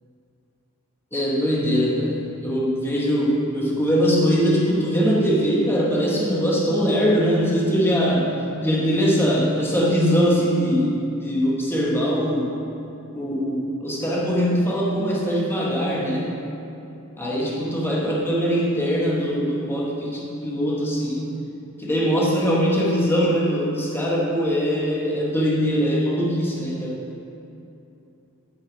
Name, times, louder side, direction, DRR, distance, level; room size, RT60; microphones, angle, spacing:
voice 1, 1.1-8.3 8.6-12.5 13.1-16.3 17.2-21.4 21.8-27.0, equal, 10° left, -4 dB, 1.1 m, -22 dB
6.6 x 6.6 x 4.8 m, 2.8 s
head